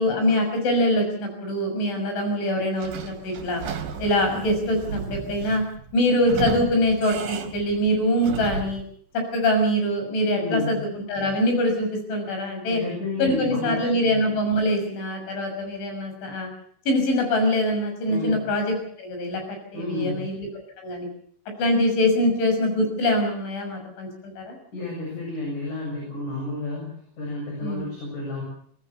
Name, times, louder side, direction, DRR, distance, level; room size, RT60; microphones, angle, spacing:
voice 1, 0.0-3.6 4.0-5.6 5.9-8.8 9.1-10.8 11.1-12.8 13.2-16.5 16.9-20.5 20.8-21.1 21.6-24.6 27.6-27.8, left 1 dB, 70° left, 4 dB, 8.7 m, -24 dB
Sliding door / Squeak, 2.8-8.9, right 6 dB, 55° right, 3.6 m, -34 dB
voice 2, 10.3-10.8 12.7-14.0 18.1-18.5 19.7-20.2 24.7-28.4, left 2 dB, 40° left, -1 dB, 8.7 m, -31 dB
23.5 x 19.0 x 6.9 m, 0.62 s
omnidirectional pair, 5.6 m